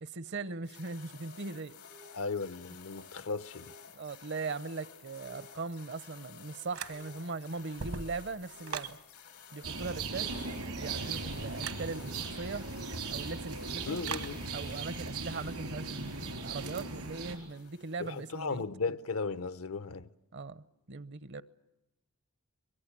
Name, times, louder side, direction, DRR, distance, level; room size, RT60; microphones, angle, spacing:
voice 1, 0.0-1.7 3.9-9.0 9.5-10.3 10.8-12.7 13.1-14.0 14.5-18.6 20.3-21.4, right 4 dB, 50° right, 0.8 m, -40 dB
sound 1, 0.6-18.6, left 7 dB, 90° left, 2.7 m, -53 dB
voice 2, 2.1-3.7 13.9-14.4 18.0-20.1, left 4 dB, 70° left, 0.8 m, -36 dB
sound 2, 6.7-7.3 7.7-9.0 11.6-11.9 14.0-14.4, right 5 dB, 70° right, 1.2 m, -40 dB
sound 3, 9.6-17.3, right 4 dB, 85° right, 4.6 m, -38 dB
23.5 x 22.0 x 8.6 m
head